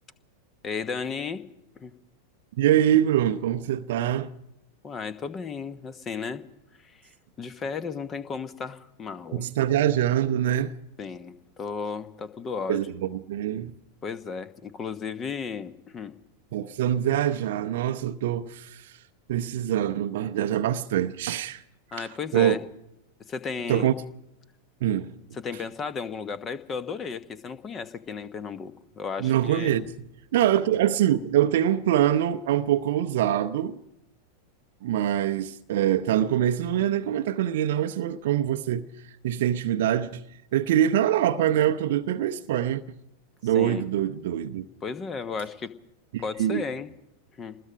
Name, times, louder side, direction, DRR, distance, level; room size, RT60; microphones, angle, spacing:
voice 1, 0.6-1.4 1.8-1.9 4.8-6.4 6.8-7.0 7.4-9.5 11.0-12.8 14.0-16.2 21.9-22.6 23.3-23.9 25.4-29.7 43.5-43.8 44.8-45.7 46.2-46.9 47.4-47.6, left 5 dB, 25° left, 1.2 m, -34 dB
voice 2, 2.6-4.3 9.3-10.7 12.7-13.7 16.5-19.0 19.3-21.6 21.9-22.6 23.7-23.9 24.8-25.1 29.2-29.8 30.3-33.8 34.8-40.2 40.5-42.8 43.4-44.7 46.1-46.6, right 11 dB, 55° right, 0.7 m, -24 dB
26.5 x 20.0 x 5.1 m
figure-of-eight pair, 90°, 0 cm